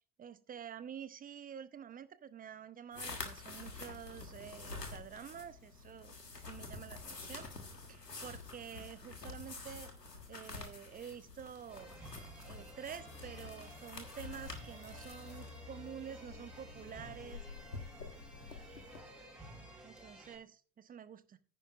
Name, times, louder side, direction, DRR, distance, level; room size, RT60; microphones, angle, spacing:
voice 1, 0.2-7.5 7.9-9.9 10.3-11.9 12.4-17.4 19.8-21.4, right 8 dB, 20° right, 14 dB, 0.7 m, -49 dB
sound 1, 2.9-19.0, left 3 dB, 90° left, 1.5 m, -48 dB
sound 2, 11.7-20.4, right 1 dB, ahead, 4.5 m, -54 dB
sound 3, 12.9-19.5, left 3 dB, 20° left, 2.8 m, -56 dB
13.5 x 9.9 x 2.4 m, 0.42 s
figure-of-eight pair, 75°, 47 cm